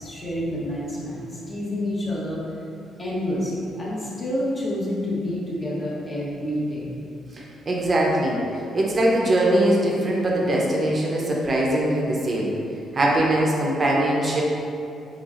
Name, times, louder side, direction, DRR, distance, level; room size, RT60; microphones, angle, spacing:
voice 1, 0.0-2.4 3.0-6.9, left 1 dB, 30° left, -6 dB, 1.0 m, -28 dB
voice 2, 7.3-8.4 8.7-12.5 12.9-14.4, right 1 dB, 35° right, -3 dB, 0.6 m, -21 dB
4.0 x 3.1 x 2.4 m, 2.6 s
cardioid pair, 90°, 0 cm